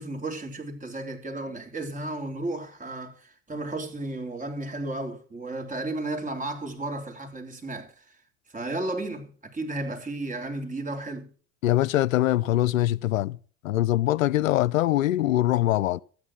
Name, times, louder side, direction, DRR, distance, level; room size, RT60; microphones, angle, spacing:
voice 1, 0.0-8.2 8.5-11.3, right 2 dB, 20° right, 3.3 m, -33 dB
voice 2, 11.6-13.4 13.6-16.0, left 14 dB, 85° left, 0.5 m, -23 dB
13.5 x 9.5 x 6.0 m
hypercardioid pair, 70°, 39 cm